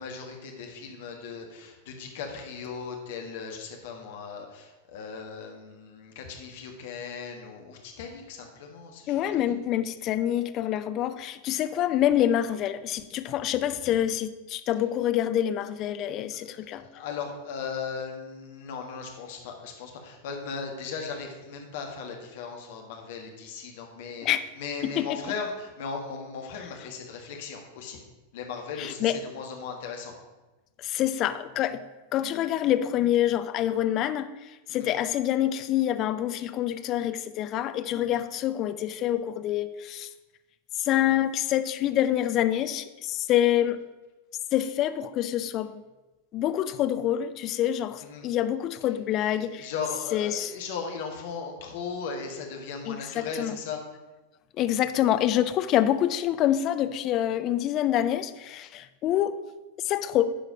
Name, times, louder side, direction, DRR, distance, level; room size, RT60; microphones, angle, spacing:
voice 1, 0.0-9.3 13.8-13.9 16.3-28.0 28.3-30.2 34.7-34.9 48.0-48.3 49.2-53.8, left 5 dB, 55° left, 2 dB, 1.6 m, -37 dB
voice 2, 9.1-16.8 24.2-24.4 25.0-25.2 28.8-29.2 30.8-31.8 32.1-34.3 34.7-40.1 40.8-43.8 44.5-45.8 46.3-49.7 50.1-50.5 52.9-53.5 54.6-59.4 59.8-60.3, left 11 dB, 35° left, 11 dB, 0.5 m, -26 dB
10.5 x 4.9 x 5.2 m, 1.1 s
figure-of-eight pair, 90°, 0 cm